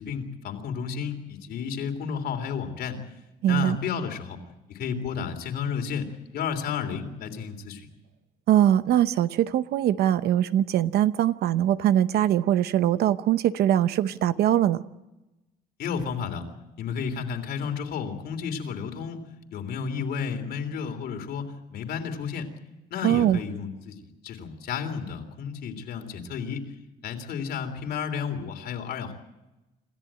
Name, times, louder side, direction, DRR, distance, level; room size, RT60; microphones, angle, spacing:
voice 1, 0.0-3.0 3.5-4.4 4.7-7.9 15.8-16.5 16.8-19.2 19.5-22.5 22.9-26.7 27.0-29.1, left 6 dB, 70° left, 5 dB, 3.3 m, -32 dB
voice 2, 3.4-3.8 8.5-14.8 23.0-23.4, right 11 dB, 70° right, 13 dB, 0.9 m, -22 dB
27.0 x 14.0 x 8.9 m, 1.0 s
cardioid pair, 110°, 17 cm